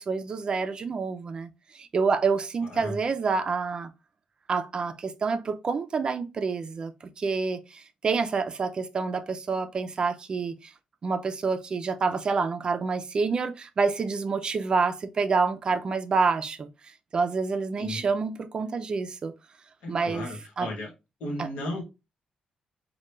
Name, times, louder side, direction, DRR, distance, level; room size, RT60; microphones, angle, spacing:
voice 1, 0.0-1.5 1.7-3.9 4.5-6.9 7.2-10.7 11.0-16.7 17.1-19.3 19.9-20.3 20.6-20.7 21.4-21.5, right 4 dB, 40° right, 0.4 m, -27 dB
voice 2, 2.6-3.0 17.8-18.0 19.8-20.9 21.2-21.8, left 1 dB, 90° left, 1.0 m, -35 dB
3.2 x 2.2 x 3.0 m
cardioid pair, 100°, 2 cm